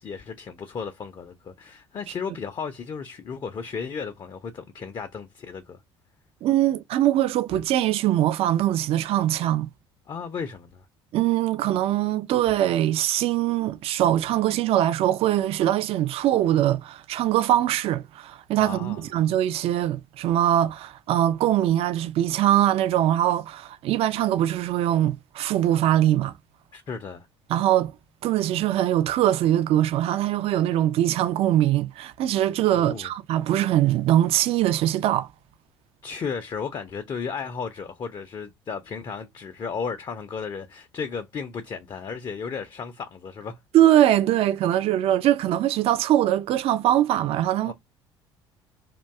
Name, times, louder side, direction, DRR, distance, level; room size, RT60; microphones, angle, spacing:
voice 1, 0.0-5.8 10.1-10.8 18.6-19.0 26.7-27.3 32.7-33.1 36.0-43.6 47.6-47.7, left 5 dB, 30° left, 0.5 m, -34 dB
voice 2, 6.4-9.7 11.1-26.3 27.5-27.9 28.2-35.3 43.7-47.7, right 12 dB, 45° right, 0.3 m, -22 dB
2.5 x 2.2 x 3.4 m
figure-of-eight pair, 55°, 14 cm